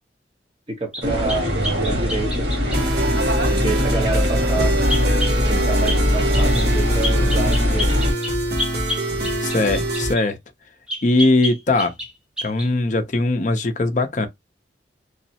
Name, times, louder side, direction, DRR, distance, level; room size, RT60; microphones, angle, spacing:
voice 1, 0.7-2.5 3.5-4.7 5.5-8.0, right 3 dB, 30° right, 1.0 m, -28 dB
sound 1, 0.9-2.8 4.9-5.4 5.9-6.0 6.3-6.7 7.0-10.3 10.9-12.1 12.4-12.7, left 1 dB, 5° right, 0.7 m, -29 dB
sound 2, 1.0-8.1, left 1 dB, 80° right, 1.6 m, -21 dB
sound 3, 2.7-10.1, right 1 dB, 60° right, 1.2 m, -25 dB
voice 2, 9.4-10.4 11.0-11.9 12.4-14.3, left 2 dB, 45° left, 0.5 m, -20 dB
3.1 x 2.0 x 2.7 m
head